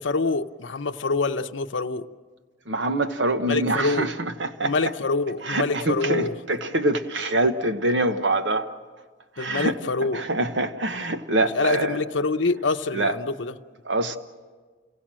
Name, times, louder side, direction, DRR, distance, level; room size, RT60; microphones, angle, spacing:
voice 1, 0.0-2.1 3.5-4.1 4.6-6.3 8.1-8.2 9.4-10.3 11.5-13.6, left 3 dB, 80° left, 0.7 m, -26 dB
voice 2, 2.7-4.9 5.4-8.7 9.4-9.8 10.1-12.0 12.9-13.2 13.9-14.2, right 2 dB, 75° right, 1.0 m, -25 dB
29.5 x 17.5 x 7.5 m
head